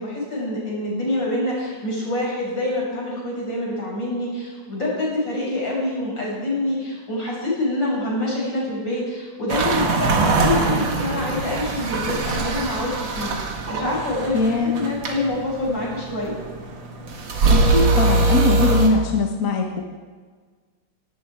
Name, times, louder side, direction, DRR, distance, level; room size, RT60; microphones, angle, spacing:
voice 1, 0.0-16.4, left 1 dB, 80° left, -4 dB, 6.8 m, -26 dB
sound 1, 9.5-18.9, right 3 dB, 85° right, 2.6 m, -22 dB
voice 2, 14.3-14.8 17.5-19.8, left 3 dB, 50° left, 2 dB, 1.7 m, -21 dB
17.5 x 17.5 x 4.8 m, 1.5 s
omnidirectional pair, 2.0 m